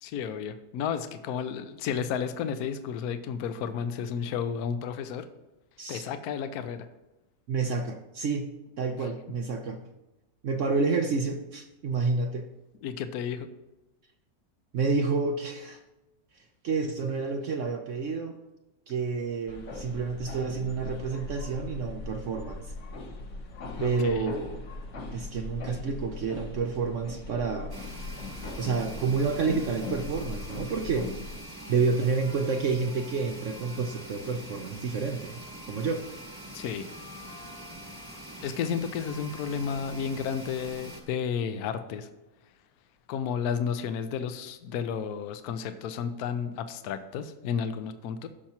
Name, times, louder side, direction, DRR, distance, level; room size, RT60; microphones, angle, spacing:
voice 1, 0.0-5.3 5.9-6.9 12.8-13.5 23.8-24.3 36.5-36.8 38.4-42.1 43.1-48.3, left 7 dB, 70° left, 10 dB, 1.1 m, -32 dB
voice 2, 7.5-8.5 8.8-9.8 10.4-12.5 14.7-15.8 16.6-18.4 18.9-22.7 23.8-24.6 25.1-27.7 28.6-31.1 31.7-35.4 35.7-36.0, right 4 dB, 60° right, 5 dB, 0.8 m, -29 dB
sound 1, 19.5-31.4, left 3 dB, 50° left, 1.1 m, -40 dB
sound 2, 27.7-41.0, equal, 15° right, 1.0 m, -44 dB
15.0 x 5.9 x 2.9 m, 0.99 s
omnidirectional pair, 1.8 m